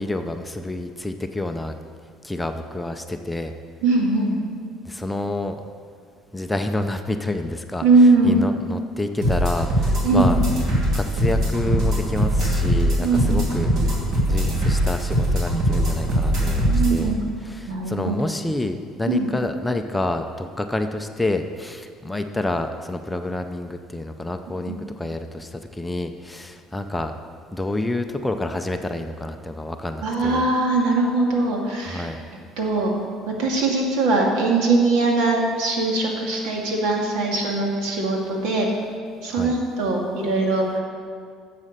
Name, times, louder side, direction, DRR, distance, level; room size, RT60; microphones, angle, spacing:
voice 1, 0.0-1.7 2.2-3.5 4.9-5.6 6.3-10.4 10.9-13.9 14.2-17.1 17.4-27.1 27.5-30.5 31.8-32.2 39.3-39.5, left 2 dB, 5° left, 6 dB, 0.4 m, -28 dB
voice 2, 3.8-4.4 7.8-8.4 10.0-10.3 13.0-13.4 16.7-17.2 17.7-18.1 19.1-19.3 24.7-24.8 30.0-32.1 32.6-32.9 33.4-38.7 39.2-40.8, right 3 dB, 75° right, 0 dB, 2.3 m, -21 dB
sound 1, 9.2-17.0, equal, 50° right, 2.6 m, -21 dB
11.5 x 7.4 x 6.6 m, 2.1 s
cardioid pair, 165°, 0 cm